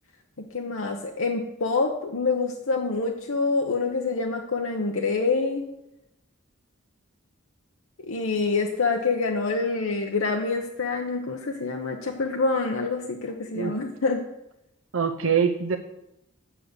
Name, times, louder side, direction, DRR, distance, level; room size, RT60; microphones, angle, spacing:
voice 1, 0.4-5.6 8.1-14.2, left 3 dB, 90° left, 2 dB, 0.9 m, -26 dB
voice 2, 14.9-15.8, right 6 dB, 80° right, 5 dB, 0.6 m, -24 dB
7.6 x 6.7 x 7.9 m, 0.87 s
head